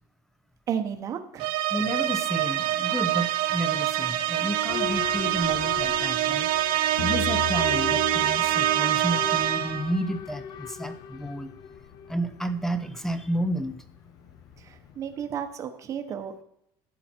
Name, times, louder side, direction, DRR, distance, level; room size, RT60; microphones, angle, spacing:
voice 1, 0.7-1.5 14.6-16.4, right 8 dB, 35° right, 6 dB, 1.0 m, -33 dB
sound 1, 1.4-9.9, right 13 dB, 70° right, 0.8 m, -25 dB
voice 2, 1.7-6.5 7.0-11.5 12.1-13.7, right 1 dB, 5° left, 11 dB, 0.7 m, -31 dB
Boat Water vehicle / Alarm, 4.7-15.3, left 7 dB, 50° left, 0.8 m, -40 dB
sound 2, 7.0-10.2, left 12 dB, 65° left, 1.1 m, -37 dB
11.5 x 7.8 x 4.5 m, 0.76 s
cardioid pair, 155°, 9 cm